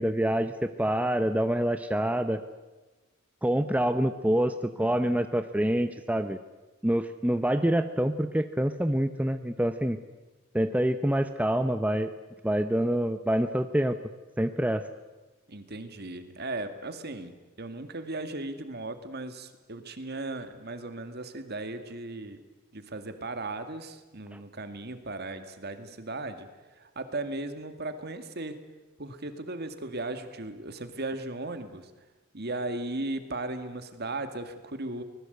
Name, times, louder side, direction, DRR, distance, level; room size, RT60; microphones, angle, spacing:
voice 1, 0.0-2.4 3.4-6.4 6.8-10.0 10.5-12.1 12.4-13.9 14.4-14.8 24.3-24.4, right 1 dB, 5° right, 9 dB, 0.7 m, -26 dB
voice 2, 15.5-22.4 22.7-26.5 26.8-28.6 29.0-31.9 32.3-35.0, right 2 dB, 50° right, 8 dB, 2.1 m, -37 dB
25.0 x 20.0 x 8.1 m, 1.2 s
head